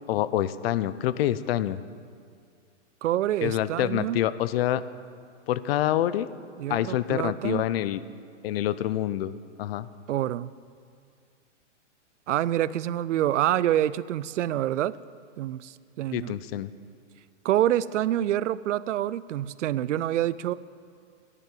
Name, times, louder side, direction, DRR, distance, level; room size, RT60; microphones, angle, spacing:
voice 1, 0.1-1.8 3.4-4.8 5.5-6.3 6.7-8.0 8.4-9.9 16.1-16.7, left 12 dB, 55° left, 16 dB, 0.6 m, -27 dB
voice 2, 3.0-4.2 6.6-7.6 10.1-10.5 12.3-15.0 15.4-16.4 17.4-20.5, right 12 dB, 85° right, 18 dB, 0.6 m, -27 dB
12.0 x 11.0 x 7.5 m, 2.2 s
hypercardioid pair, 145°, 36 cm